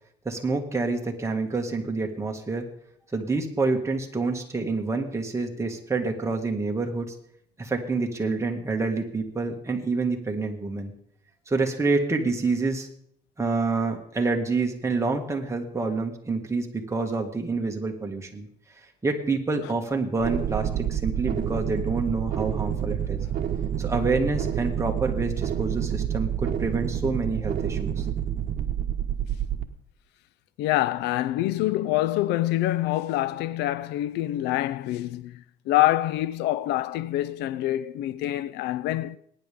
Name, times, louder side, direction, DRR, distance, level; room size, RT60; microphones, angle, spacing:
voice 1, 0.3-2.7 3.1-7.1 7.6-10.9 11.5-12.9 13.4-18.5 19.0-23.2 23.8-28.1, right 3 dB, 15° right, 2.1 m, -27 dB
sound 1, 20.2-29.6, right 9 dB, 55° right, 1.3 m, -28 dB
voice 2, 30.6-39.2, left 15 dB, 85° left, 0.5 m, -26 dB
21.0 x 10.0 x 3.7 m
cardioid pair, 110°, 17 cm